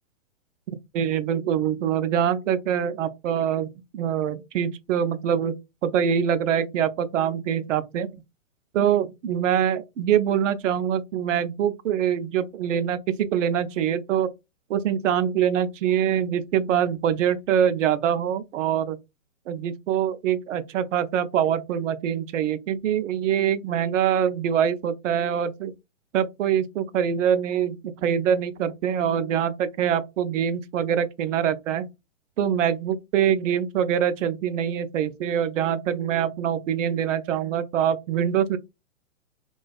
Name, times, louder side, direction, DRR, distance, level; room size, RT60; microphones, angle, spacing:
voice 1, 0.9-5.5 5.8-8.2 8.7-14.3 14.7-19.0 19.5-25.7 26.1-31.9 32.4-38.6, right 9 dB, 70° right, 0.5 m, -24 dB
2.4 x 2.3 x 2.3 m
hypercardioid pair, 145°, 39 cm